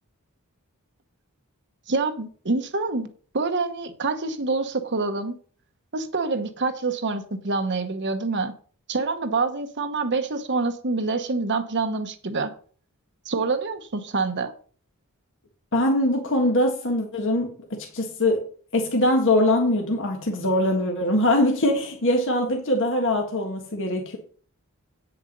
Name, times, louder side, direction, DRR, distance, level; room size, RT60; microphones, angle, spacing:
voice 1, 1.9-3.1 3.3-5.3 5.9-8.5 8.9-12.5 13.3-14.5, right 3 dB, 55° right, 7 dB, 1.1 m, -26 dB
voice 2, 15.7-18.4 18.7-24.2, left 1 dB, 60° left, 2 dB, 1.6 m, -22 dB
9.0 x 6.9 x 5.3 m, 0.44 s
head